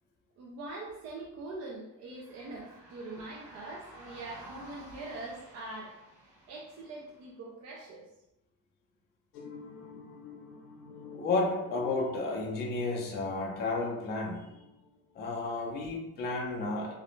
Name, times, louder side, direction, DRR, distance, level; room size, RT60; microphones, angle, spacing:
voice 1, 0.4-6.0 6.5-8.1, right 2 dB, 50° right, -2 dB, 0.4 m, -43 dB
sound 1, 2.1-7.3, right 1 dB, 10° right, 0.8 m, -52 dB
sound 2, 9.3-15.5, left 4 dB, 85° left, 0.6 m, -50 dB
voice 2, 11.1-14.5 15.2-16.9, left 3 dB, 30° left, -1 dB, 0.4 m, -32 dB
2.5 x 2.1 x 3.0 m, 0.91 s
cardioid pair, 165°, 35 cm